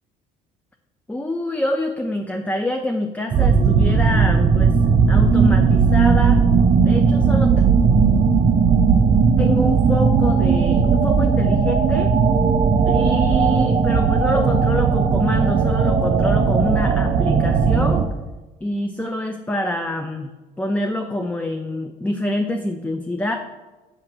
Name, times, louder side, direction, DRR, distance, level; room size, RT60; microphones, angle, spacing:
voice 1, 1.1-4.8 5.1-6.4 6.8-7.7 9.4-12.1 12.9-18.1 18.6-20.3 20.6-23.4, left 1 dB, 10° left, 4 dB, 0.5 m, -26 dB
sound 1, 3.3-18.1, right 5 dB, 40° right, 0.5 m, -17 dB
7.6 x 3.0 x 5.9 m, 1.2 s
cardioid pair, 110°, 17 cm